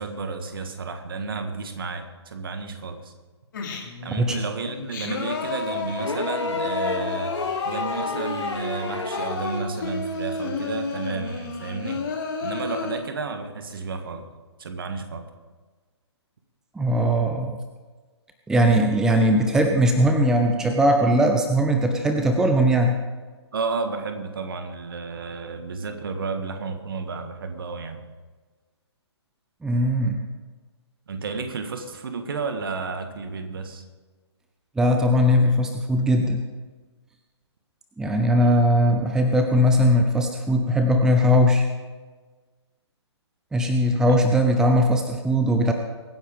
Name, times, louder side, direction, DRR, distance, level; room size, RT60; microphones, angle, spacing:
voice 1, 0.0-3.1 4.0-12.0 12.4-14.3 14.6-15.3 23.5-28.0 31.1-33.8 38.2-38.6 44.1-44.2, right 4 dB, 50° right, 7 dB, 1.9 m, -32 dB
Singing, 3.5-4.1 4.6-13.0, left 4 dB, 45° left, 3.0 m, -31 dB
sound 1, 6.0-9.5 10.9-11.0, left 3 dB, 85° left, 1.1 m, -31 dB
voice 2, 16.7-17.6 18.5-23.0 29.6-30.2 34.8-36.4 38.0-41.7 43.5-45.7, equal, 5° right, 5 dB, 0.7 m, -20 dB
23.5 x 9.9 x 3.8 m, 1.4 s
figure-of-eight pair, 130°, 15 cm